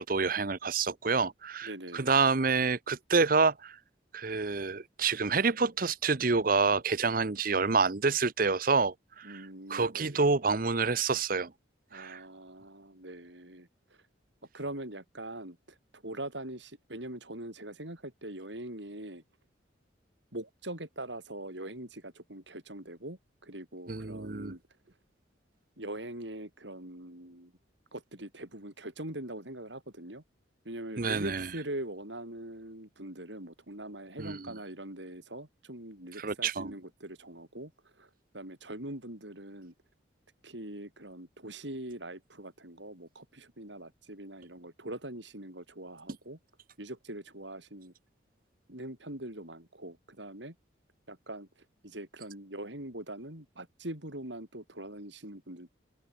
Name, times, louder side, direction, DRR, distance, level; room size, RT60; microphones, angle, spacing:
voice 1, 0.0-3.8 4.1-9.4 9.7-11.5 11.9-12.2 23.9-24.5 31.0-31.5 34.2-34.5 36.2-36.7, right 4 dB, 45° right, 0.9 m, -28 dB
voice 2, 1.6-2.1 9.2-10.2 11.9-13.7 14.5-19.2 20.3-24.6 25.8-27.5 27.9-30.2 30.6-37.7 38.0-39.7 40.4-46.4 46.8-47.9 48.7-50.5 51.1-51.5 51.8-55.7, right 1 dB, 70° right, 6.3 m, -42 dB
head